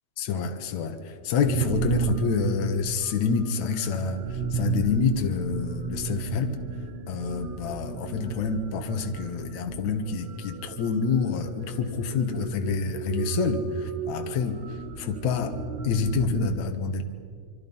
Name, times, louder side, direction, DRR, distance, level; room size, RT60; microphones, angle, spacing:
voice 1, 0.2-4.2 4.5-6.5 7.1-14.6 15.0-15.6 15.8-17.0, left 5 dB, 70° left, 5 dB, 2.6 m, -27 dB
sound 1, 1.4-16.5, right 6 dB, 70° right, 2.4 m, -34 dB
27.0 x 24.0 x 5.5 m, 2.2 s
omnidirectional pair, 3.4 m